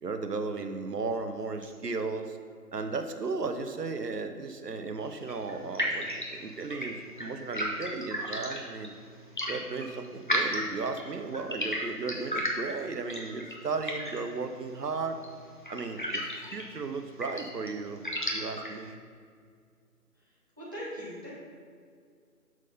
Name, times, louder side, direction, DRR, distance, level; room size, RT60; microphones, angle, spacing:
voice 1, 0.0-2.4 2.7-8.9 9.5-15.2 15.7-16.2 16.5-18.0 18.3-19.0, right 4 dB, 90° right, 7 dB, 0.9 m, -35 dB
sound 1, 5.0-18.9, equal, 35° left, 0.7 m, -36 dB
voice 2, 20.6-21.3, equal, 15° right, -10 dB, 1.0 m, -40 dB
6.2 x 5.3 x 5.7 m, 2.1 s
figure-of-eight pair, 170°, 47 cm